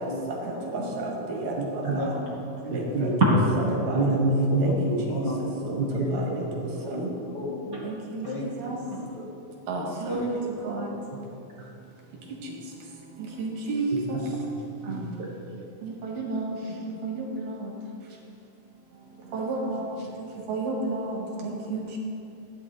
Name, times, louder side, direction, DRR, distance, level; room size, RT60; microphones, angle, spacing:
voice 1, 0.0-0.9 1.9-2.2 2.7-2.9 4.5-4.7 5.1-6.2 6.8-7.9 8.2-8.5 9.1-9.3 9.8-10.3 10.7-10.8 11.1-11.2, left 1 dB, 40° left, -3 dB, 1.8 m, -35 dB
voice 2, 0.7-2.0 2.6-3.1 3.9-4.2 4.6-4.8 5.1-5.2 5.7-5.8 6.1-7.1 7.8-8.8 9.7-10.4 10.6-10.9 13.4-14.2 14.9-15.1 15.8-17.7 19.3-19.9 20.5-22.0, right 2 dB, 85° right, -2 dB, 3.6 m, -32 dB
voice 3, 1.6-2.0 2.7-3.4 3.9-6.5 7.7-7.8 8.6-9.0 11.6-11.7 12.1-12.2 13.9-14.5 14.9-15.0 15.3-15.4, right 1 dB, 45° right, -5 dB, 1.4 m, -26 dB
15.5 x 9.7 x 4.1 m, 2.7 s
omnidirectional pair, 3.7 m